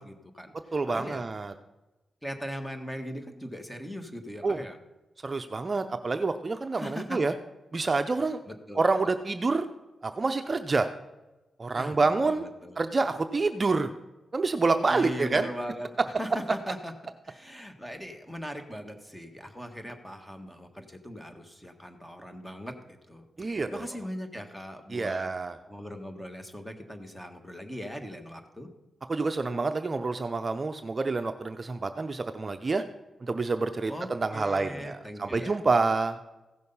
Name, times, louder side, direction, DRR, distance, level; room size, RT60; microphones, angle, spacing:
voice 1, 0.0-1.3 2.2-4.8 6.7-7.3 8.5-9.1 11.7-12.8 14.9-16.9 17.2-22.7 23.1-25.3 25.6-28.7 33.9-35.6, equal, 10° left, 6 dB, 1.5 m, -40 dB
voice 2, 0.7-1.5 4.4-4.6 5.2-7.3 7.7-8.4 8.8-9.7 10.0-10.9 11.6-12.5 12.8-13.9 14.3-15.5 23.4-23.8 24.9-25.6 29.1-32.8 33.2-36.2, right 3 dB, 35° right, 8 dB, 0.6 m, -27 dB
15.5 x 6.4 x 5.5 m, 1.1 s
cardioid pair, 80°, 0 cm